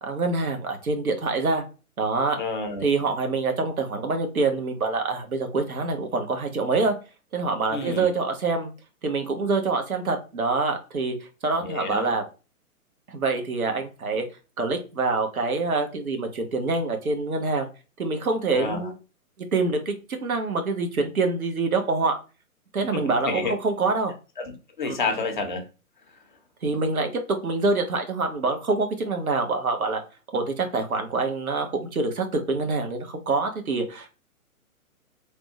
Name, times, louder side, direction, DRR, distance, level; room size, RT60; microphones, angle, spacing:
voice 1, 0.0-1.6 2.0-2.4 2.8-6.9 7.3-8.7 9.0-11.1 11.4-12.2 13.1-14.2 14.6-17.7 18.0-19.0 19.5-19.9 20.2-22.2 22.7-24.1 24.9-25.0 26.6-30.0 30.3-31.7 31.9-34.1, right 3 dB, 70° right, 0.8 m, -25 dB
voice 2, 2.4-2.9 7.7-8.1 11.6-12.1 18.5-18.9 22.9-23.5 24.4-25.6, left 4 dB, 35° left, 0.5 m, -29 dB
3.4 x 2.1 x 2.7 m
figure-of-eight pair, 125°, 44 cm